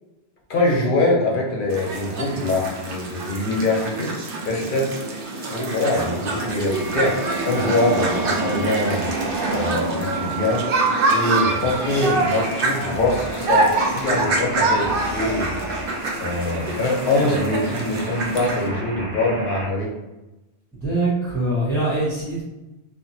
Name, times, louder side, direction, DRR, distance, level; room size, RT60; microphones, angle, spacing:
voice 1, 0.5-4.1 4.4-5.0 5.5-9.1 9.5-15.6 16.2-19.9, left 2 dB, 60° left, -1 dB, 0.7 m, -23 dB
sound 1, 1.7-18.7, right 3 dB, 60° right, 0.7 m, -25 dB
sound 2, 6.7-19.7, right 2 dB, 40° right, 1.4 m, -33 dB
voice 2, 20.8-22.4, right 2 dB, ahead, -12 dB, 1.1 m, -23 dB
2.8 x 2.5 x 2.6 m, 1.0 s
omnidirectional pair, 1.1 m